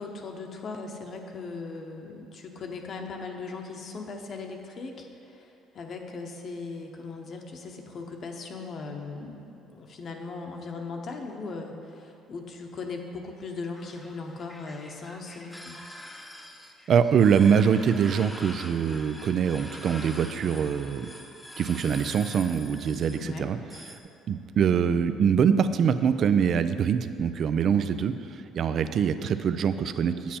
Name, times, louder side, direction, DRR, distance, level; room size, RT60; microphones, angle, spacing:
voice 1, 0.0-15.8 23.2-23.5, left 4 dB, 50° left, 2 dB, 0.9 m, -38 dB
sound 1, 13.8-24.0, left 1 dB, 10° left, 0.7 m, -44 dB
voice 2, 16.9-21.1 21.6-23.6 24.3-30.4, right 7 dB, 55° right, 11 dB, 0.4 m, -24 dB
8.7 x 7.3 x 4.3 m, 2.8 s
cardioid pair, 100°, 0 cm